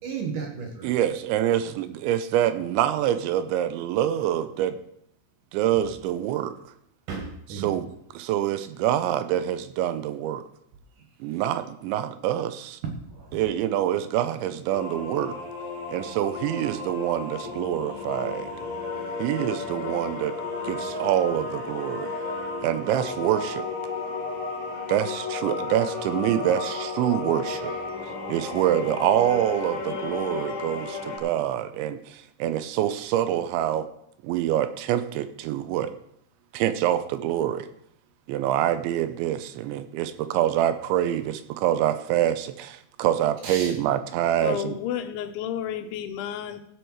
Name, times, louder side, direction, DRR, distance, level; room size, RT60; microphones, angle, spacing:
voice 1, 0.0-0.9 7.1-7.7 12.8-13.3 43.4-43.7, right 5 dB, 60° right, 2.6 m, -34 dB
voice 2, 0.8-4.8 5.5-6.5 7.5-10.4 11.2-12.8 13.3-15.4 15.9-18.5 19.2-20.3 20.6-22.1 22.6-23.7 24.9-27.7 28.0-33.9 34.2-35.9 36.5-37.7 38.3-44.8, right 11 dB, 90° right, 3.1 m, -26 dB
sound 1, 14.7-31.2, left 4 dB, 35° left, 2.9 m, -33 dB
voice 3, 44.4-46.6, left 10 dB, 85° left, 3.2 m, -31 dB
16.5 x 7.9 x 4.7 m
omnidirectional pair, 5.3 m